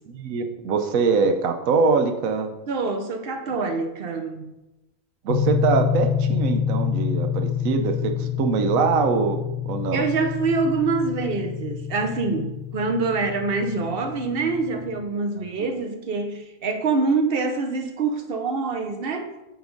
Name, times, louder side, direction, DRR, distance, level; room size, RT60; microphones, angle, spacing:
voice 1, 0.1-2.5 5.2-9.4 9.7-10.1 15.6-15.7, right 5 dB, 85° right, 7 dB, 1.2 m, -23 dB
voice 2, 2.7-4.5 9.9-19.3, right 4 dB, 50° right, 7 dB, 0.9 m, -25 dB
sound 1, 5.3-15.0, left 8 dB, 70° left, 0.4 m, -27 dB
8.0 x 4.9 x 3.9 m, 0.97 s
omnidirectional pair, 1.4 m